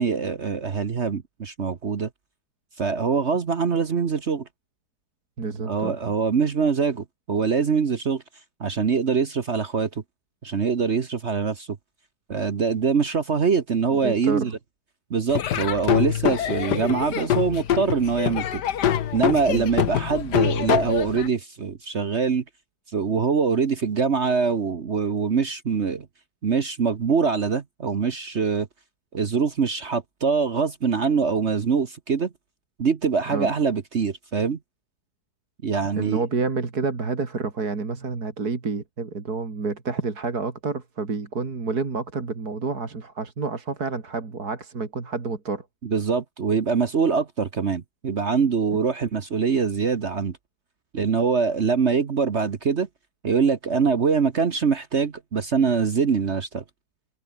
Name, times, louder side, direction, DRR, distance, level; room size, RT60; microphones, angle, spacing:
voice 1, 0.0-2.1 2.8-4.4 5.7-8.2 8.6-9.9 10.4-11.7 12.3-14.5 15.1-18.6 19.1-22.4 22.9-26.1 26.4-28.7 29.1-32.3 32.8-34.6 35.6-36.2 45.8-50.4 50.9-52.9 53.2-56.6, right 5 dB, 45° right, 1.3 m, -23 dB
voice 2, 5.4-6.0 13.9-14.5 19.5-19.6 33.3-33.5 36.0-45.7, right 4 dB, 65° right, 3.4 m, -29 dB
Laughter / Drum, 15.3-21.3, left 10 dB, 75° left, 1.7 m, -25 dB
omnidirectional pair, 1.8 m